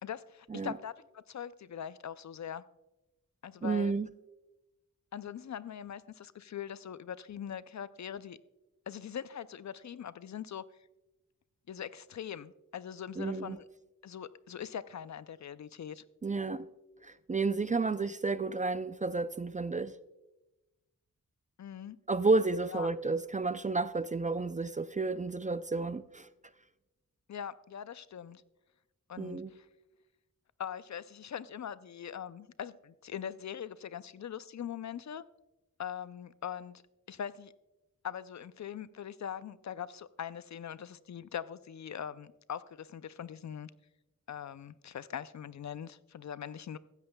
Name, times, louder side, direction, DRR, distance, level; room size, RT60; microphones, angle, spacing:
voice 1, 0.0-2.6 3.4-3.9 5.1-8.4 8.9-10.6 11.7-13.7 14.0-16.0 21.6-22.0 22.7-22.9 27.3-28.4 29.1-29.7 30.6-35.2 35.8-36.8 37.1-37.5 38.0-43.7 44.3-46.8, left 9 dB, 55° left, 0.4 m, -42 dB
voice 2, 3.6-4.1 13.2-13.6 16.2-16.7 17.0-19.9 22.1-26.3 29.2-29.5, right 3 dB, 25° right, 0.3 m, -31 dB
15.5 x 12.5 x 2.2 m
cardioid pair, 55°, 34 cm